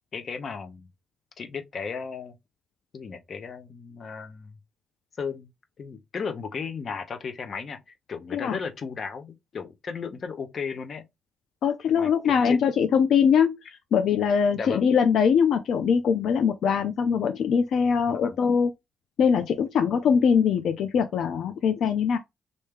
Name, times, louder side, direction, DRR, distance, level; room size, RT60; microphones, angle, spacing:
voice 1, 0.1-0.9 1.4-2.3 2.9-4.6 5.2-5.5 5.8-11.0 11.9-12.6 14.5-14.8 18.1-18.4, left 5 dB, 50° left, 0.8 m, -35 dB
voice 2, 11.6-13.6 13.9-18.7 19.2-22.2, left 7 dB, 70° left, 0.4 m, -22 dB
3.3 x 2.7 x 3.5 m
cardioid pair, 90°, 0 cm